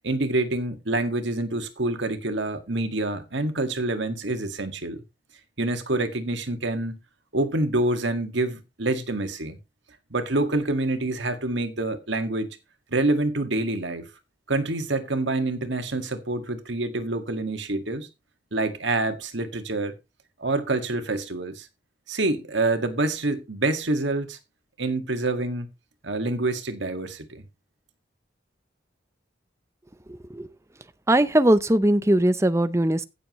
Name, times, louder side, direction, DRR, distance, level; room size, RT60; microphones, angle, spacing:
voice 1, 0.0-5.0 5.6-7.0 7.3-9.6 10.1-12.6 12.9-14.1 14.5-18.1 18.5-19.9 20.4-21.7 22.1-24.4 24.8-25.7 26.0-27.4, right 2 dB, 75° right, 1.9 m, -26 dB
voice 2, 30.1-30.5 31.1-33.0, right 1 dB, 15° right, 0.6 m, -20 dB
15.5 x 7.2 x 3.1 m
head